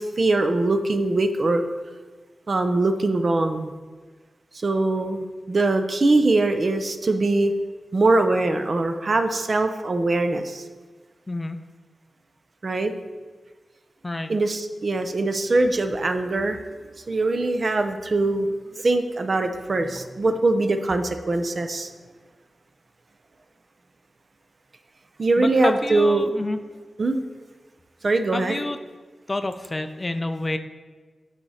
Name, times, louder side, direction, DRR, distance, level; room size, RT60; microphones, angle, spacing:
voice 1, 0.0-1.6 2.5-3.7 4.6-7.5 7.9-10.6 12.6-12.9 14.3-16.6 17.1-18.5 18.8-21.9 25.2-26.3 27.0-27.2 28.0-28.6, right 2 dB, 45° right, 7 dB, 0.5 m, -22 dB
voice 2, 11.3-11.6 14.0-14.3 25.4-26.6 28.3-28.8 29.3-30.6, left 2 dB, 25° left, 8 dB, 0.4 m, -28 dB
9.8 x 4.9 x 4.2 m, 1.4 s
wide cardioid pair, 125°, 0 cm